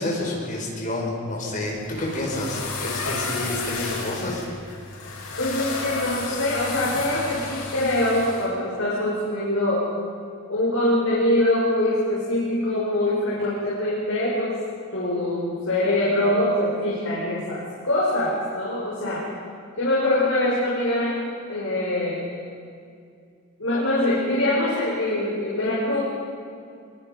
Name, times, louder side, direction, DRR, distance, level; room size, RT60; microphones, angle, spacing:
voice 1, 0.0-4.4, left 1 dB, 35° left, -2 dB, 5.4 m, -29 dB
sound 1, 1.6-8.5, left 3 dB, 85° left, 6.8 m, -32 dB
voice 2, 5.4-9.9 10.5-14.6 14.9-19.2 19.8-21.1 21.5-22.2 23.6-26.0, left 1 dB, 65° left, -7 dB, 5.7 m, -23 dB
24.0 x 23.0 x 5.3 m, 2.3 s
head